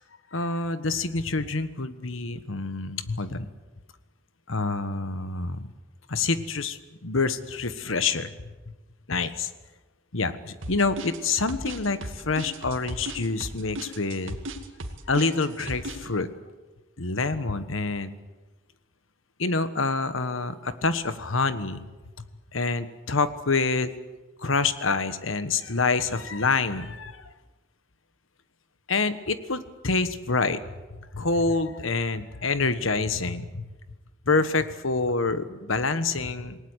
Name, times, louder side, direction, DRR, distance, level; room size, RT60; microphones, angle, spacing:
voice 1, 0.3-3.5 4.5-5.7 6.1-8.3 9.1-9.5 10.1-14.4 15.1-16.3 17.0-18.1 19.4-21.8 22.5-23.9 24.4-27.2 28.9-30.6 31.1-33.7 34.2-36.6, left 3 dB, 90° left, 12 dB, 1.4 m, -27 dB
sound 1, 10.6-16.0, right 1 dB, 80° right, 2.3 m, -36 dB
27.5 x 19.0 x 8.2 m, 1.2 s
head